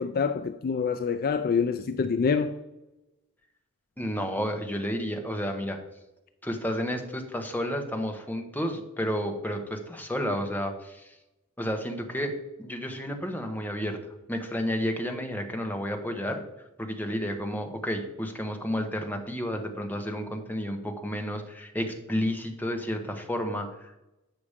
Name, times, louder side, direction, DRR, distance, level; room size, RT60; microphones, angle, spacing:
voice 1, 0.0-2.5, left 5 dB, 45° left, 10 dB, 0.4 m, -26 dB
voice 2, 4.0-5.8 6.4-11.2 11.6-12.3 12.6-14.0 14.3-16.4 16.8-24.0, equal, 10° left, 4 dB, 1.0 m, -31 dB
8.5 x 6.0 x 5.0 m, 0.96 s
head